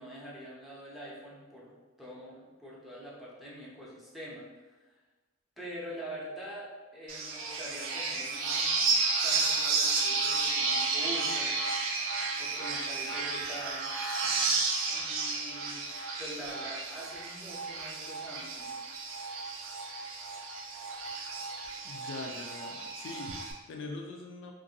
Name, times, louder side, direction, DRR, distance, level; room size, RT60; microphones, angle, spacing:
voice 1, 0.0-1.7 2.0-4.4 4.8-5.0 5.6-8.8 9.2-11.5 12.4-13.9 14.8-15.8 16.2-18.7, right 1 dB, ahead, -6 dB, 0.5 m, -44 dB
sound 1, 7.1-23.5, right 4 dB, 65° right, 0.4 m, -32 dB
voice 2, 21.8-24.5, left 3 dB, 65° left, 2 dB, 0.3 m, -42 dB
2.9 x 2.5 x 2.7 m, 1.3 s
head